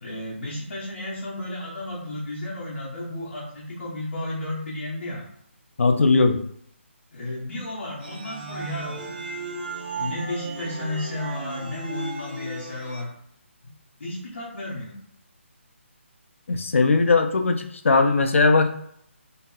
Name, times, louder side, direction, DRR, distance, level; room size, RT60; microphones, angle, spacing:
voice 1, 0.0-5.3 7.1-9.2 10.0-13.1 14.0-15.0, left 1 dB, 55° left, -7 dB, 0.9 m, -33 dB
voice 2, 5.8-6.4 16.5-18.7, left 3 dB, 75° left, 7 dB, 0.4 m, -19 dB
sound 1, 8.0-13.0, right 3 dB, 45° right, 0.7 m, -35 dB
2.8 x 2.7 x 2.3 m, 0.70 s
hypercardioid pair, 175°, 7 cm